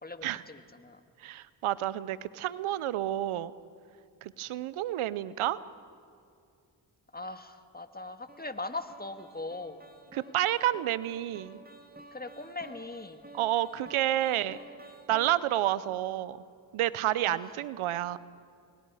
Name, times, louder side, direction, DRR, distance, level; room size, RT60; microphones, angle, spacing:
voice 1, 0.0-1.0 7.1-9.8 12.1-13.2 17.2-17.5, left 2 dB, 20° left, 9 dB, 1.7 m, -40 dB
voice 2, 1.2-3.5 4.2-5.6 10.1-11.6 13.3-14.6 15.1-16.4 16.7-18.2, right 13 dB, 90° right, 17 dB, 0.7 m, -30 dB
sound 1, 8.3-15.7, right 2 dB, 20° right, 2.0 m, -52 dB
30.0 x 22.0 x 4.9 m, 2.4 s
cardioid pair, 50°, 48 cm